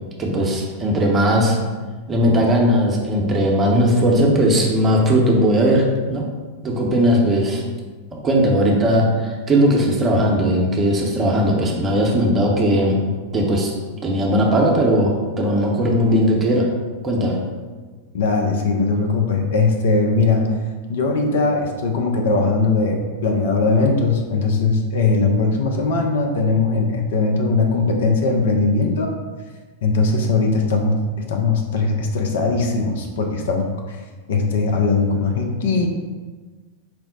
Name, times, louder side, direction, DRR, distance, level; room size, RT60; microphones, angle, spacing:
voice 1, 0.2-1.6 2.1-6.3 6.6-7.6 8.1-13.0 13.3-13.7 14.0-16.7 17.0-17.4, equal, 20° right, -1 dB, 0.7 m, -18 dB
voice 2, 18.1-20.5 20.9-29.1 29.8-31.0 31.3-34.0 34.3-36.0, left 3 dB, 60° left, 2 dB, 0.5 m, -20 dB
4.4 x 2.0 x 3.8 m, 1.4 s
figure-of-eight pair, 90°, 0 cm